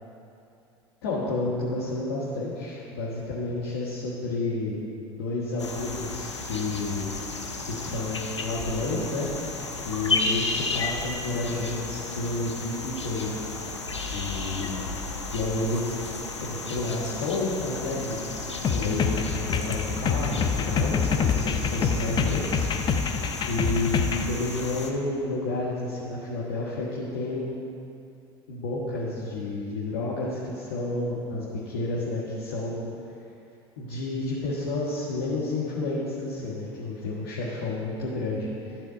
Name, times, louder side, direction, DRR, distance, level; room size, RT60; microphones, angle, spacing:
voice 1, 1.0-4.8 5.1-7.1 7.7-9.3 9.8-13.3 14.1-14.8 15.3-15.9 16.4-18.3 18.7-27.5 28.5-32.9 33.8-38.5, left 2 dB, 65° left, -7 dB, 1.5 m, -30 dB
sound 1, 5.6-24.9, left 3 dB, 85° left, 0.7 m, -33 dB
sound 2, 18.6-24.3, left 6 dB, 35° left, 0.7 m, -26 dB
12.0 x 4.3 x 6.6 m, 2.6 s
figure-of-eight pair, 70°, 14 cm